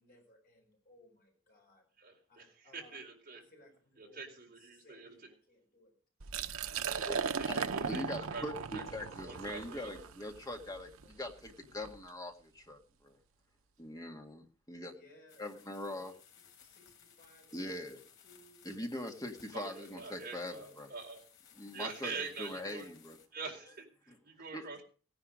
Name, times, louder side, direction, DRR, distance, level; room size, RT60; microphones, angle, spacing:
voice 1, 0.0-1.9 2.3-3.0 3.3-5.9 9.1-9.6 11.3-11.4 14.9-16.0 16.3-17.9 18.2-18.6 21.9-22.0 22.4-22.6, left 1 dB, 45° left, 1 dB, 7.3 m, -63 dB
voice 2, 2.0-3.4 4.0-5.1 6.8-8.8 9.1-10.0 19.5-21.2 21.7-22.9 23.3-24.8, right 4 dB, 45° right, 1 dB, 4.4 m, -45 dB
Liquid, 6.2-12.0, right 6 dB, 75° right, 0.8 m, -38 dB
voice 3, 7.0-13.2 13.8-14.9 15.4-16.1 17.5-18.0 18.7-20.9 21.6-22.1 22.4-23.2 24.5-24.7, left 1 dB, 15° left, 3 dB, 1.9 m, -42 dB
sound 1, 15.3-23.3, left 8 dB, 60° left, 3.6 m, -61 dB
17.5 x 10.5 x 5.1 m, 0.39 s
head